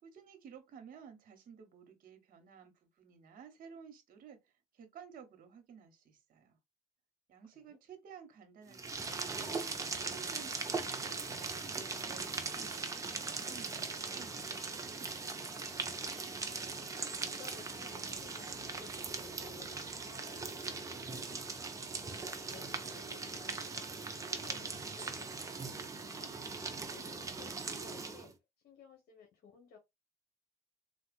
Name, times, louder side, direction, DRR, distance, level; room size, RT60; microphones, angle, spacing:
voice 1, 0.0-6.6 7.3-9.5 9.9-14.9, right 7 dB, 55° right, 1.0 m, -55 dB
sound 1, 8.7-28.3, right 4 dB, 20° right, 0.6 m, -40 dB
sound 2, 9.5-25.8, left 2 dB, 35° left, 2.2 m, -63 dB
voice 2, 16.5-21.6 22.5-23.8 24.3-26.3 26.9-28.3 28.6-29.8, left 6 dB, 65° left, 1.2 m, -58 dB
3.7 x 2.3 x 2.4 m
cardioid pair, 110°, 17 cm